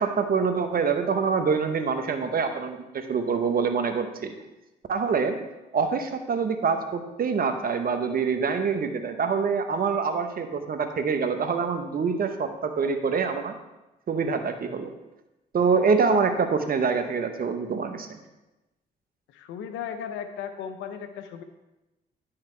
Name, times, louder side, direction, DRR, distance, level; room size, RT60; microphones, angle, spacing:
voice 1, 0.0-4.3 4.9-5.4 5.7-13.6 14.1-14.9 15.5-18.2, right 5 dB, 50° right, 7 dB, 1.0 m, -25 dB
voice 2, 19.3-21.4, left 8 dB, 85° left, 9 dB, 0.7 m, -36 dB
10.5 x 5.7 x 3.3 m, 1.0 s
supercardioid pair, 60°, 19 cm